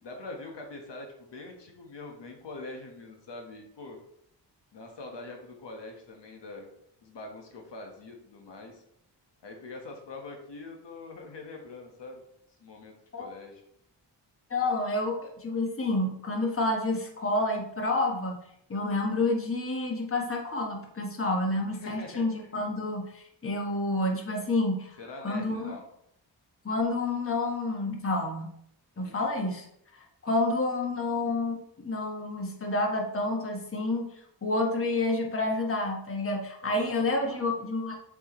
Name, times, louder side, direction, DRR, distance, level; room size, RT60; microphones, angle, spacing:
voice 1, 0.0-4.0 4.7-6.7 7.0-8.8 9.4-12.2 12.6-13.6 21.8-22.3 25.0-25.9 29.0-29.2 36.6-37.5, left 2 dB, 70° left, 2 dB, 1.4 m, -44 dB
voice 2, 14.5-18.4 18.7-25.0 25.2-25.8 26.6-28.5 29.0-29.7 29.9-31.6 31.8-34.1 34.4-38.0, left 2 dB, 30° left, 1 dB, 1.3 m, -29 dB
6.9 x 4.7 x 3.1 m, 0.73 s
cardioid pair, 70°, 43 cm